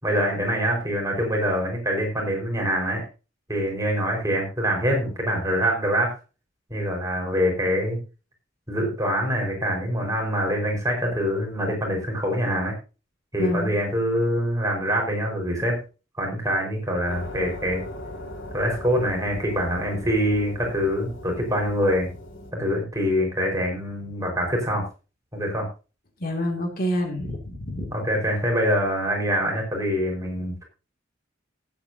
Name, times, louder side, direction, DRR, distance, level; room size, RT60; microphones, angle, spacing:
voice 1, 0.0-3.0 3.5-6.2 6.7-8.0 8.7-12.7 13.3-15.8 16.2-17.8 18.5-22.1 22.5-24.8 25.3-25.7 27.9-30.6, equal, 15° right, 1 dB, 4.6 m, -25 dB
voice 2, 13.4-13.7 26.2-27.9, equal, 45° left, 3 dB, 2.3 m, -27 dB
sound 1, 17.1-22.5, left 1 dB, 75° left, 5.2 m, -39 dB
18.5 x 8.5 x 2.7 m, 0.32 s
head